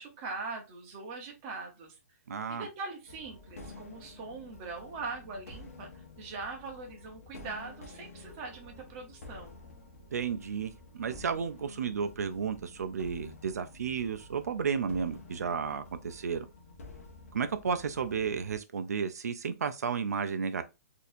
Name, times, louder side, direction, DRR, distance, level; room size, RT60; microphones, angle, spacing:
voice 1, 0.0-2.0 2.5-9.6, right 4 dB, 20° right, 0.7 m, -41 dB
voice 2, 2.3-2.7 10.1-16.5 17.3-20.6, right 6 dB, 75° right, 0.5 m, -33 dB
sound 1, 3.1-18.6, left 2 dB, 60° left, 1.0 m, -50 dB
4.1 x 2.7 x 2.5 m
hypercardioid pair, 180°, 9 cm